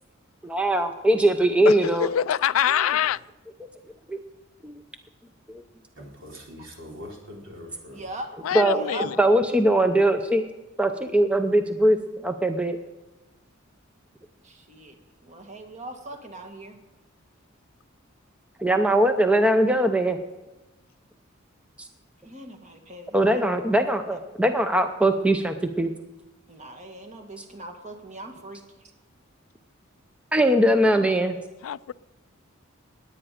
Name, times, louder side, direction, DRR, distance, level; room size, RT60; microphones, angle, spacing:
voice 1, 0.4-2.1 4.1-4.2 4.6-4.8 5.5-5.6 8.5-8.9 9.2-10.4 10.8-12.8 18.6-20.2 21.8-21.9 23.1-25.9 30.3-31.4, right 1 dB, 5° right, 6 dB, 0.6 m, -21 dB
voice 2, 1.7-3.2 8.4-9.2 31.6-31.9, left 10 dB, 90° left, 19 dB, 0.4 m, -25 dB
voice 3, 2.6-3.0 7.9-8.3 8.7-9.1 14.4-15.0 15.2-16.8 22.2-23.6 24.1-24.2 26.5-28.6, right 1 dB, 35° right, 4 dB, 1.8 m, -40 dB
voice 4, 6.0-8.0, left 1 dB, 65° right, -1 dB, 4.0 m, -42 dB
20.0 x 8.9 x 5.0 m, 1.1 s
head